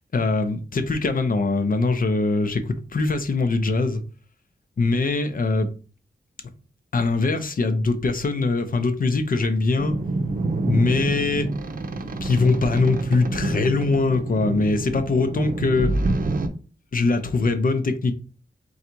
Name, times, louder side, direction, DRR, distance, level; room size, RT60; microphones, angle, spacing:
voice 1, 0.1-4.0 4.8-5.7 6.9-9.9 10.6-11.5 12.2-15.9 16.9-18.1, left 3 dB, 55° left, 0.7 m, -22 dB
sound 1, 9.8-16.5, right 2 dB, 55° right, 0.6 m, -27 dB
4.0 x 2.4 x 4.4 m
wide cardioid pair, 75°, 17 cm